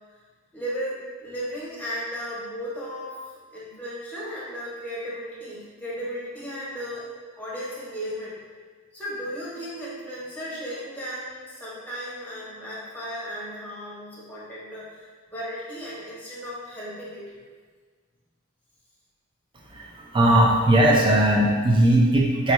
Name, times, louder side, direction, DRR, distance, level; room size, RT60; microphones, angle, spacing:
voice 1, 0.5-3.2 3.5-7.1 7.4-8.4 8.9-17.3, equal, 5° left, -8 dB, 0.9 m, -35 dB
voice 2, 19.7-22.5, right 1 dB, 25° right, -3 dB, 0.5 m, -19 dB
4.3 x 2.3 x 3.0 m, 1.5 s
head